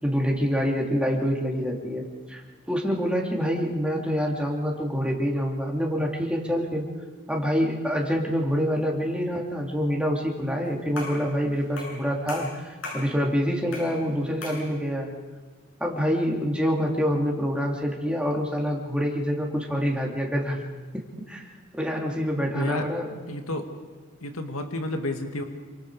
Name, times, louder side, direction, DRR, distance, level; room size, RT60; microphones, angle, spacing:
voice 1, 0.0-2.4 2.7-6.8 7.3-15.1 15.8-20.6 20.9-21.4 21.7-23.2, equal, 5° right, -1 dB, 2.9 m, -26 dB
sound 1, 11.0-11.3 11.8-12.0 12.3-13.1 13.7-14.0 14.4-14.7, left 2 dB, 65° left, 7.9 m, -36 dB
voice 2, 22.5-22.8 23.3-23.7 24.2-25.4, left 2 dB, 80° left, 5 dB, 2.1 m, -31 dB
28.0 x 25.5 x 4.9 m, 1.4 s
head